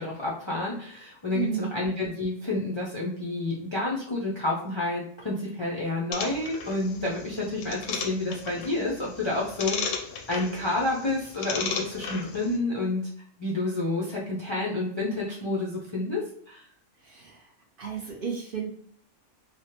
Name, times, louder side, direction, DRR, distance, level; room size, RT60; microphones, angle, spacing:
voice 1, 0.0-10.0 10.3-13.1 13.4-16.6, left 2 dB, 45° left, -5 dB, 0.3 m, -29 dB
voice 2, 1.3-1.8 17.0-17.5 17.8-18.8, right 7 dB, 60° right, 0 dB, 0.6 m, -33 dB
sound 1, 6.1-12.6, left 5 dB, 80° left, 0.9 m, -35 dB
3.3 x 2.1 x 2.8 m, 0.64 s
omnidirectional pair, 1.3 m